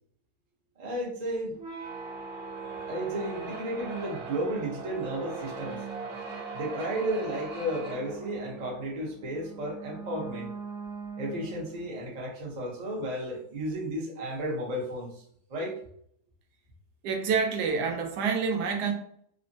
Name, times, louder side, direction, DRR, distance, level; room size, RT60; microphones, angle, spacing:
voice 1, 0.8-1.6 2.8-5.8 6.5-10.5 11.2-15.2 15.5-15.8, right 1 dB, 35° right, 0.7 m, -33 dB
sound 1, 1.5-11.9, right 4 dB, 55° right, 1.0 m, -40 dB
voice 2, 17.0-18.9, right 5 dB, 90° right, 1.2 m, -27 dB
3.5 x 2.0 x 2.6 m
omnidirectional pair, 1.7 m